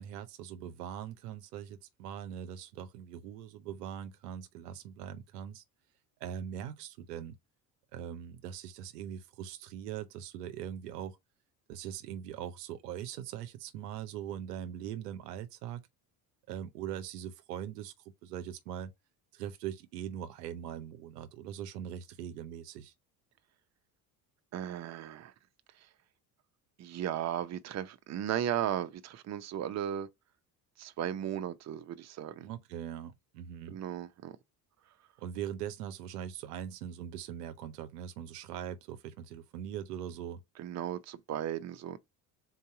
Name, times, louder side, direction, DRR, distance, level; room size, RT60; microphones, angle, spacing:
voice 1, 0.0-5.6 6.2-7.4 7.9-11.2 11.7-15.9 16.5-17.9 18.2-18.9 19.3-22.9 32.4-33.8 35.2-40.4, right 10 dB, 80° right, 0.7 m, -41 dB
voice 2, 24.5-25.3 26.8-30.1 30.8-32.5 33.7-34.4 40.6-42.0, right 10 dB, 35° right, 0.7 m, -36 dB
3.9 x 2.7 x 4.6 m
hypercardioid pair, 65°, 47 cm